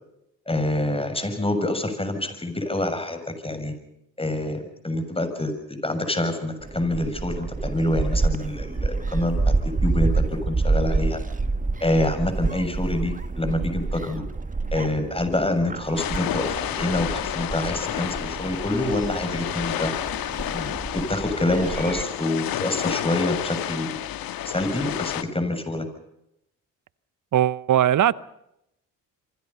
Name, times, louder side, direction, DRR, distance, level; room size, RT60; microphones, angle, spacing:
voice 1, 0.5-3.7 4.2-11.2 11.8-14.2 14.7-19.9 20.5-24.0 24.4-25.9, left 1 dB, 15° left, 6.9 m, -26 dB
Gull seagull, 6.6-22.0, right 3 dB, 20° right, 1.4 m, -28 dB
sound 1, 16.0-25.2, left 12 dB, 75° left, 1.6 m, -30 dB
voice 2, 27.3-28.2, right 11 dB, 55° right, 1.0 m, -19 dB
26.0 x 25.0 x 5.6 m
supercardioid pair, 65°, 36 cm